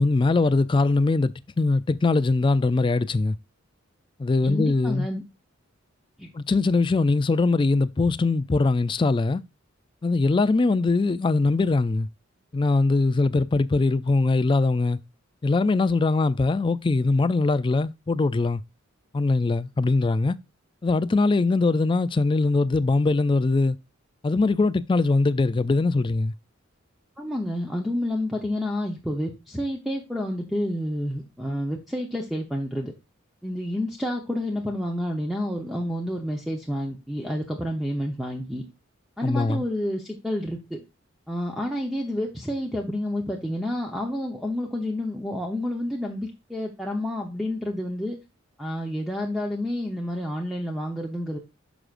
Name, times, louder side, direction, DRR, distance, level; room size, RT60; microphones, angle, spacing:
voice 1, 0.0-3.4 4.2-5.1 6.3-9.4 10.0-12.1 12.5-15.0 15.4-18.6 19.1-20.4 20.8-23.8 24.2-26.3 39.2-39.6, left 3 dB, 25° left, 0.3 m, -22 dB
voice 2, 4.4-5.2 6.2-6.3 27.2-32.9 33.4-38.6 39.2-40.8 41.3-48.2 48.6-51.4, left 1 dB, ahead, 0.9 m, -29 dB
9.8 x 6.1 x 2.5 m
head